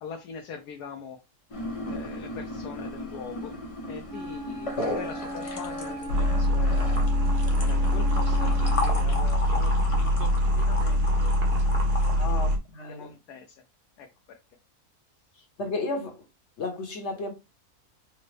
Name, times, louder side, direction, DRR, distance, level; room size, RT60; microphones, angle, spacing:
voice 1, 0.0-1.2 1.9-3.5 3.9-7.1 7.6-11.3 12.0-12.2 12.9-13.6 14.0-14.4, left 6 dB, 85° left, 1.2 m, -42 dB
sound 1, 1.5-12.1, left 1 dB, 35° left, 0.5 m, -36 dB
Wind instrument woodwind instrument, 4.1-8.9, right 1 dB, 60° right, 1.3 m, -38 dB
sound 2, 6.1-12.6, equal, 80° right, 1.5 m, -23 dB
voice 2, 12.1-13.1 15.6-16.1 16.6-17.3, left 2 dB, 50° left, 1.1 m, -33 dB
4.9 x 2.1 x 3.2 m
omnidirectional pair, 1.6 m